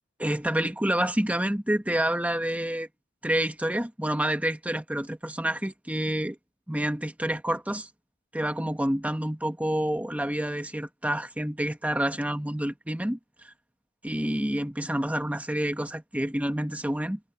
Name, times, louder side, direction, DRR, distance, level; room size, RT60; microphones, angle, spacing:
voice 1, 0.2-2.9 3.2-6.4 6.7-7.9 8.3-13.5 14.0-17.2, right 1 dB, 5° right, 1.3 m, -28 dB
head